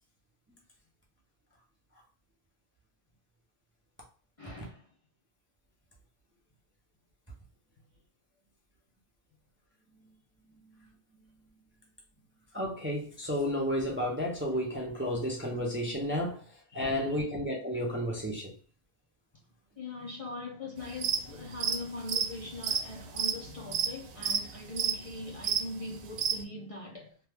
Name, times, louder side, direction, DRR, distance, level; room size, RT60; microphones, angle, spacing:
voice 1, 4.4-4.9 16.7-17.2 19.8-27.2, left 2 dB, 40° left, 0.6 m, -41 dB
voice 2, 12.5-16.4 16.7-18.5, equal, 15° right, 0.6 m, -32 dB
sound 1, 20.8-21.2 21.5-26.4, right 7 dB, 85° right, 0.8 m, -30 dB
3.0 x 2.3 x 3.4 m
omnidirectional pair, 1.1 m